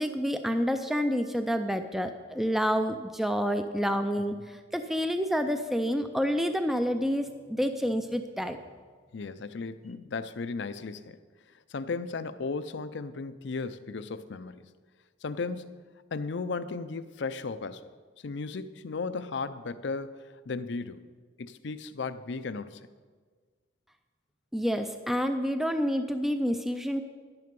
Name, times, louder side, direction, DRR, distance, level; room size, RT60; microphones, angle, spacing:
voice 1, 0.0-8.6 24.5-27.0, equal, ahead, 7 dB, 0.4 m, -28 dB
voice 2, 9.1-11.2 11.7-14.6 15.2-17.8 18.2-21.0 21.4-22.9, left 4 dB, 65° left, 13 dB, 0.5 m, -35 dB
11.5 x 9.5 x 5.3 m, 1.5 s
head